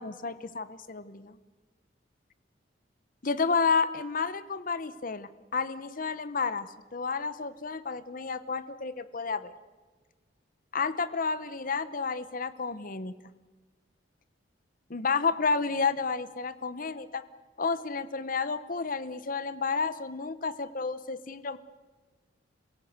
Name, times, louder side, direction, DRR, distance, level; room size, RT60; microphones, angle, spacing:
voice 1, 0.0-1.4 3.2-9.5 10.7-13.1 14.9-17.2 17.6-21.6, left 4 dB, 50° left, 14 dB, 0.9 m, -31 dB
29.0 x 17.0 x 8.0 m, 1.3 s
head